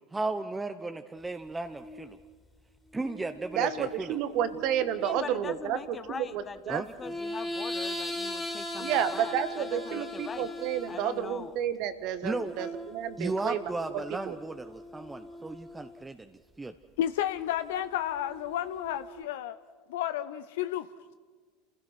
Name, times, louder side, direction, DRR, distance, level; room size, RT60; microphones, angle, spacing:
voice 1, 0.1-2.2 2.9-4.2 6.7-6.9 12.2-12.5 13.2-16.7, right 2 dB, 15° right, 7 dB, 0.9 m, -35 dB
sound 1, 1.6-2.2 2.8-5.2 7.0-11.6 12.6-16.1 17.8-19.2, left 1 dB, 5° left, 3.0 m, -40 dB
voice 2, 3.5-6.8 8.8-13.6 14.2-14.4, right 9 dB, 60° right, 11 dB, 1.4 m, -31 dB
voice 3, 5.0-10.5 10.9-11.5, left 5 dB, 30° left, 11 dB, 1.2 m, -42 dB
voice 4, 17.0-19.5 19.9-20.9, left 11 dB, 75° left, 11 dB, 0.6 m, -31 dB
29.0 x 16.0 x 6.0 m, 1.5 s
hypercardioid pair, 80°, 0 cm